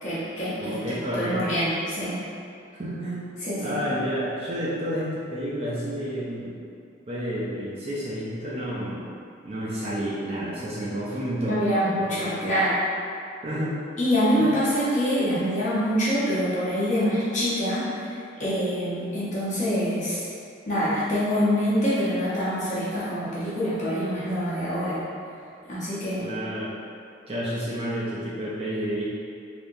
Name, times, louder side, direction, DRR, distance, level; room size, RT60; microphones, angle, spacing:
voice 1, 0.0-2.2 3.4-3.8 11.4-12.8 14.0-20.3 20.7-25.0 25.7-26.3, equal, 35° left, -10 dB, 0.9 m, -25 dB
voice 2, 0.6-1.5 2.7-3.2 3.6-6.6 7.1-9.1 9.4-11.6 12.0-12.4 13.4-13.8 14.3-14.5 26.2-26.7 27.3-29.1, equal, 25° right, -8 dB, 0.5 m, -30 dB
3.5 x 2.9 x 2.6 m, 2.4 s
head